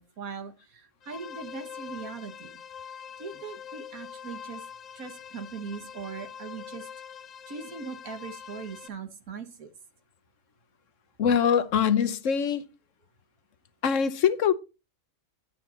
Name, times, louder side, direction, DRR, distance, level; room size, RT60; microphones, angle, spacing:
voice 1, 0.0-2.5 3.2-4.6 4.9-6.9 7.5-9.7, right 5 dB, 75° right, 1.9 m, -40 dB
sound 1, 1.0-8.9, left 8 dB, 85° left, 0.3 m, -44 dB
voice 2, 11.2-12.7 13.8-14.5, left 7 dB, 65° left, 1.2 m, -23 dB
9.7 x 9.4 x 4.1 m
omnidirectional pair, 1.5 m